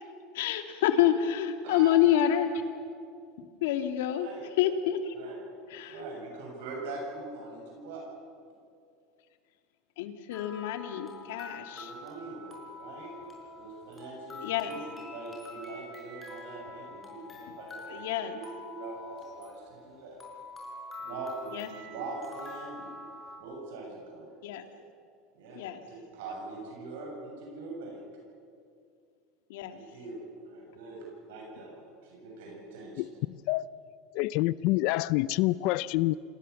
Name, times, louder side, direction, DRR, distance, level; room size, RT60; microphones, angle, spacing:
voice 1, 0.3-2.5 3.6-4.3 4.6-5.1 5.7-6.0 10.0-11.9 14.4-14.7 17.9-18.4 21.5-21.7 24.4-24.6 25.6-25.8 29.5-29.8, left 11 dB, 85° left, 7 dB, 2.1 m, -27 dB
voice 2, 1.6-2.5 4.1-4.4 5.1-8.0 11.5-13.2 13.6-20.2 21.0-21.6 21.9-24.2 25.3-25.6 25.9-28.0 29.7-33.0, right 3 dB, 80° right, -1 dB, 7.4 m, -42 dB
sound 1, 10.3-23.4, left 2 dB, 15° left, 5.4 m, -46 dB
voice 3, 33.0-33.7 34.1-36.2, left 18 dB, 60° left, 19 dB, 0.5 m, -27 dB
27.0 x 18.5 x 7.1 m, 2.4 s
supercardioid pair, 150°, 0 cm